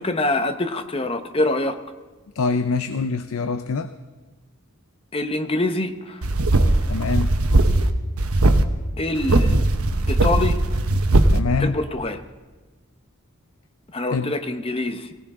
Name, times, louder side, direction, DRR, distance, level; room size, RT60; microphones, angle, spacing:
voice 1, 0.0-1.8 5.1-6.2 8.9-9.6 10.1-10.6 11.6-12.2 13.9-15.1, left 2 dB, 25° left, 9 dB, 0.8 m, -25 dB
voice 2, 2.4-3.9 6.9-7.3 11.3-11.8 14.1-14.3, left 4 dB, 85° left, 10 dB, 0.6 m, -24 dB
sound 1, 6.2-7.9 8.2-8.6 9.2-11.4, right 2 dB, 90° right, 1.0 m, -18 dB
18.5 x 18.0 x 3.7 m, 1.3 s
head